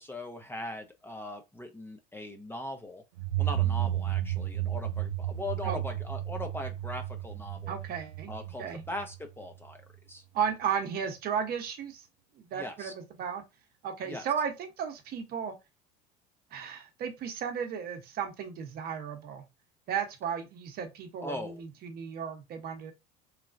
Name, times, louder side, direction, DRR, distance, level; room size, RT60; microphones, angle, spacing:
voice 1, 0.0-3.0 3.4-7.7 8.3-9.8 10.1-10.2 12.5-12.9 14.0-14.3 21.2-21.6, left 1 dB, 10° left, 0.5 m, -40 dB
sound 1, 3.2-9.7, right 13 dB, 75° right, 0.5 m, -33 dB
voice 2, 7.7-8.3 8.6-8.8 10.3-12.1 12.3-13.4 13.8-15.5 16.5-19.5 19.9-22.9, right 7 dB, 45° right, 0.9 m, -34 dB
3.2 x 2.3 x 2.5 m
hypercardioid pair, 80°, 21 cm